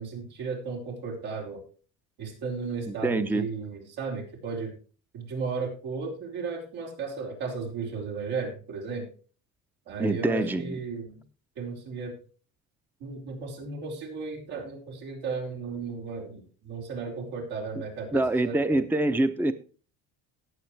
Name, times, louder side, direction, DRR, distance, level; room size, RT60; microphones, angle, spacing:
voice 1, 0.0-1.6 2.2-4.7 5.1-9.1 9.9-11.2 11.6-12.1 13.0-18.8, right 4 dB, 85° right, -1 dB, 4.7 m, -35 dB
voice 2, 2.9-3.5 10.0-10.8 18.1-19.5, right 2 dB, 5° right, 11 dB, 0.6 m, -25 dB
18.0 x 7.0 x 3.3 m, 0.39 s
cardioid pair, 105°, 37 cm